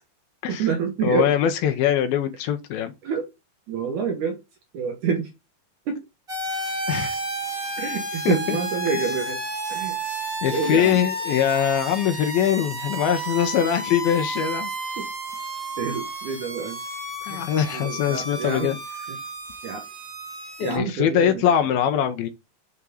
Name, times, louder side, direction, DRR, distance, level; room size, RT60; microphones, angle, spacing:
voice 1, 0.5-1.3 3.0-3.3 3.7-4.4 4.7-5.3 5.9-6.0 6.9-7.0 7.8-9.4 9.7-10.0 10.5-11.0 15.0-15.1 15.8-16.8 17.2-17.4 17.7-18.8 19.6-19.8 20.6-21.3, right 6 dB, 70° right, 2.1 m, -27 dB
voice 2, 1.0-2.9 6.9-7.2 8.3-8.6 10.4-14.7 17.3-18.8 20.6-22.3, left 9 dB, 80° left, 2.4 m, -22 dB
sound 1, 6.3-20.8, right 1 dB, 30° right, 1.1 m, -32 dB
6.8 x 3.7 x 6.3 m
omnidirectional pair, 4.6 m